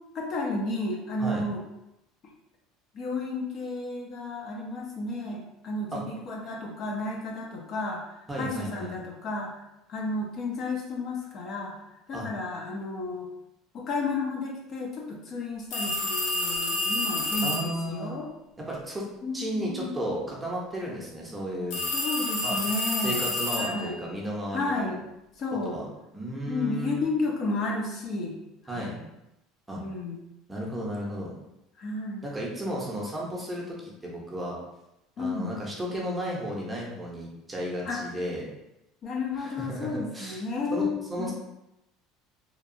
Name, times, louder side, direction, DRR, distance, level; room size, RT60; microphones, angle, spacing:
voice 1, 0.1-1.6 2.9-8.1 8.3-9.5 9.9-11.7 12.1-13.3 13.7-18.3 19.2-20.1 21.9-23.3 23.6-24.0 24.5-25.0 25.4-25.8 26.5-28.3 28.6-29.0 29.7-30.2 31.8-32.3 35.2-35.6 37.9-38.0 39.0-41.3, left 3 dB, 45° left, -1 dB, 0.5 m, -32 dB
voice 2, 8.3-8.9 12.1-12.3 17.4-18.2 18.6-21.8 22.4-22.6 23.0-24.9 25.6-25.8 26.1-27.0 28.7-29.0 29.7-29.8 30.5-31.3 32.2-34.6 35.2-38.5 39.3-40.4 40.7-41.3, equal, 10° right, -4 dB, 0.6 m, -34 dB
sound 1, 15.7-17.8 21.7-23.9, left 1 dB, 80° left, 0.7 m, -29 dB
2.8 x 2.2 x 2.5 m, 0.88 s
cardioid pair, 140°, 0 cm